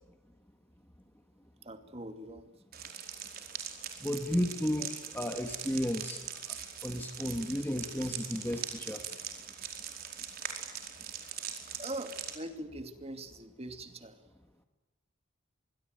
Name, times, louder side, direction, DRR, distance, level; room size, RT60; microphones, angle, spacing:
voice 1, 1.6-2.5 4.8-4.9 11.8-14.2, right 1 dB, 30° right, 8 dB, 2.5 m, -42 dB
sound 1, 2.7-12.4, right 8 dB, 50° right, 4.7 m, -42 dB
voice 2, 4.0-6.2 6.5-6.6 6.8-9.0, equal, 10° left, 4 dB, 1.6 m, -33 dB
26.0 x 22.0 x 9.4 m, 1.1 s
head